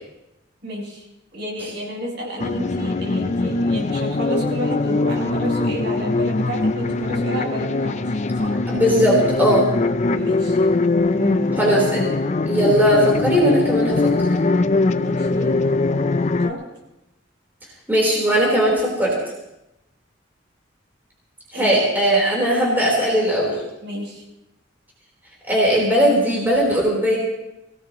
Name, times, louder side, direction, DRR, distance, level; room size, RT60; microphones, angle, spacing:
voice 1, 0.6-1.1 1.3-8.5 10.1-10.6 11.1-11.8 12.6-12.7 14.7-16.0 16.4-16.6 21.5-21.8 23.8-24.2, equal, 60° right, -4 dB, 7.3 m, -31 dB
sound 1, 2.4-16.5, left 3 dB, 35° left, 0.5 m, -21 dB
voice 2, 8.7-9.7 11.6-12.0 12.5-14.3 17.9-19.1 21.5-23.5 25.4-27.2, equal, 10° right, -4 dB, 4.0 m, -18 dB
22.5 x 18.0 x 3.1 m, 0.93 s
head